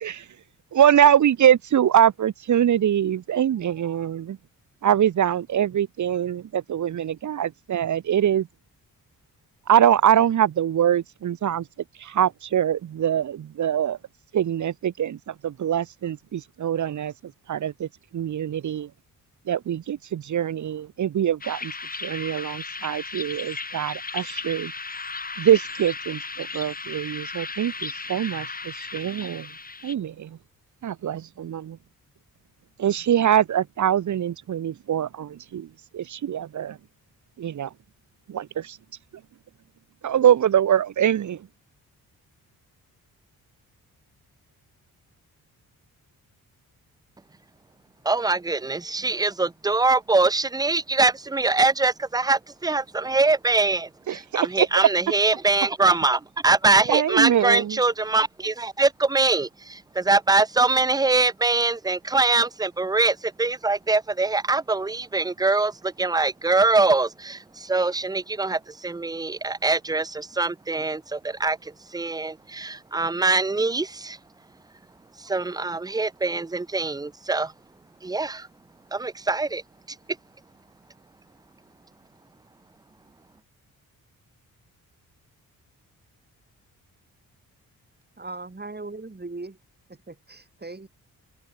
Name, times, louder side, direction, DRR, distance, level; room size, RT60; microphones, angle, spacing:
voice 1, 0.7-4.4 4.8-8.5 9.7-11.6 12.0-14.0 14.3-17.1 17.5-17.9 18.1-18.9 19.5-21.7 22.0-24.7 25.4-29.5 29.8-30.4 30.8-31.8 32.8-35.7 35.9-36.8 37.4-37.7 38.3-38.8 40.0-41.4 54.1-54.7 56.9-57.8, right 10 dB, 50° right, 0.7 m, -23 dB
sound 1, 21.4-29.9, left 4 dB, 25° left, 1.1 m, -35 dB
voice 2, 48.0-74.2 75.2-77.5 78.0-78.5 78.9-79.6, right 3 dB, 10° right, 0.4 m, -23 dB
voice 3, 88.2-89.6 89.9-90.9, right 3 dB, 25° right, 7.7 m, -38 dB
supercardioid pair, 55°, 37 cm